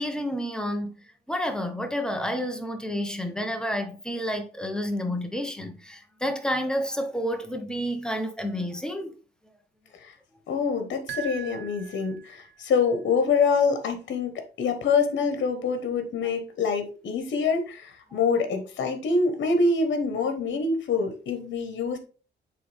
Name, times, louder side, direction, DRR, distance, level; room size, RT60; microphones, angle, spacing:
voice 1, 0.0-9.2, equal, 5° left, 1.0 m, -30 dB
voice 2, 10.5-22.0, left 4 dB, 65° left, 1.4 m, -25 dB
sound 1, 11.1-12.6, right 10 dB, 70° right, 0.8 m, -40 dB
7.7 x 3.4 x 3.5 m
cardioid pair, 90°, 20 cm